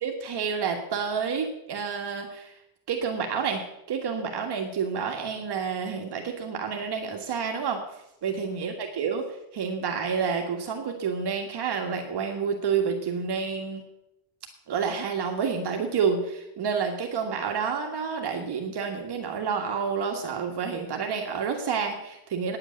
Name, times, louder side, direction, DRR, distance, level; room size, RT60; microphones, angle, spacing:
voice 1, 0.0-2.5 2.9-7.8 8.2-9.3 9.5-13.8 14.7-22.6, right 6 dB, 55° right, 3 dB, 1.8 m, -29 dB
9.9 x 8.8 x 8.7 m, 0.84 s
cardioid pair, 115°, 49 cm